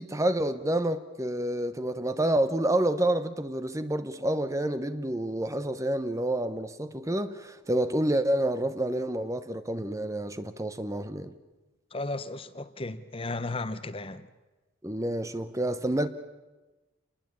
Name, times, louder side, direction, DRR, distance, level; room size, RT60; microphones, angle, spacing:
voice 1, 0.0-11.3 14.8-16.1, right 1 dB, 15° right, 0.9 m, -28 dB
voice 2, 11.9-14.3, left 2 dB, 25° left, 0.9 m, -34 dB
28.0 x 20.0 x 8.6 m
head